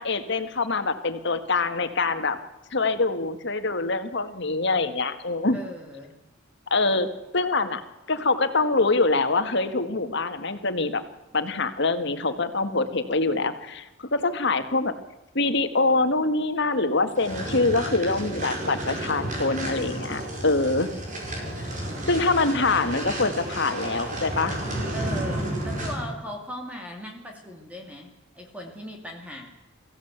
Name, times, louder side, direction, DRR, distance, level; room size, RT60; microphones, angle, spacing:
voice 1, 0.0-2.4 2.7-5.6 6.7-7.1 7.3-7.8 8.1-11.0 11.3-14.9 15.4-20.9 22.1-24.6, left 3 dB, 65° left, 9 dB, 1.8 m, -24 dB
voice 2, 5.5-6.1 21.8-22.5 24.9-29.5, equal, 5° right, 2 dB, 2.5 m, -38 dB
sound 1, 17.2-26.1, right 1 dB, 40° right, 5.2 m, -32 dB
23.5 x 15.5 x 8.2 m, 1.0 s
head